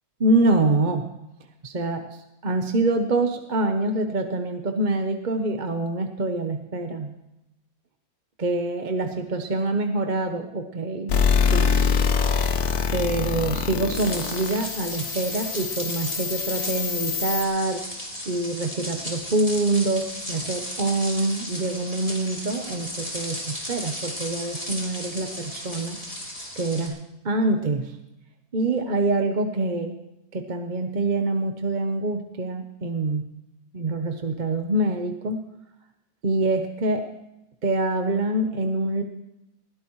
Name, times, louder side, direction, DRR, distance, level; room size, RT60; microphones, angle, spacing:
voice 1, 0.2-1.1 1.6-7.1 8.4-11.2 11.4-11.7 12.9-17.8 18.3-26.0 26.6-28.0 28.5-30.0 30.3-33.3 33.7-35.4 36.2-37.1 37.6-39.0, right 2 dB, 35° right, 5 dB, 0.9 m, -25 dB
sound 1, 11.1-17.4, left 6 dB, 85° left, 1.4 m, -24 dB
sound 2, 13.9-26.9, left 1 dB, 25° left, 3.4 m, -35 dB
20.5 x 16.0 x 3.1 m, 0.90 s
omnidirectional pair, 1.6 m